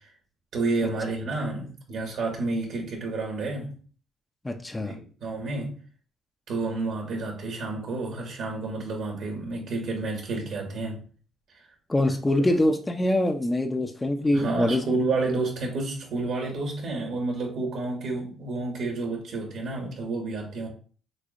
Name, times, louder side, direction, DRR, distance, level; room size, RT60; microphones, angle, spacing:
voice 1, 0.5-3.7 4.8-5.8 6.5-11.0 12.4-12.5 14.3-20.7, right 3 dB, 70° right, 1.9 m, -30 dB
voice 2, 4.4-5.0 11.9-14.8, left 1 dB, 15° left, 0.5 m, -24 dB
6.3 x 2.6 x 2.6 m
cardioid pair, 90°, 0 cm